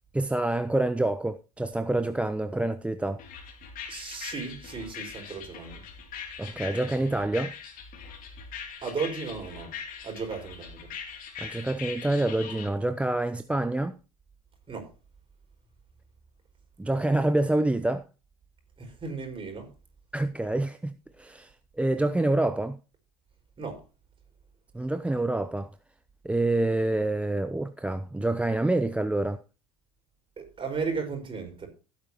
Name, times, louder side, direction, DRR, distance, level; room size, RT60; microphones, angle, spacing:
voice 1, 0.1-3.2 6.4-7.5 11.4-14.0 16.8-18.0 20.1-22.8 24.7-25.7 26.2-29.4, right 2 dB, 5° right, 0.6 m, -27 dB
sound 1, 3.2-12.7, left 7 dB, 45° left, 2.9 m, -41 dB
voice 2, 3.9-5.8 8.8-9.7 10.0-10.9 14.7-14.9 18.8-19.7 23.6-23.8 30.4-31.7, right 5 dB, 25° right, 5.1 m, -35 dB
16.0 x 8.6 x 2.9 m
hypercardioid pair, 80°, 20 cm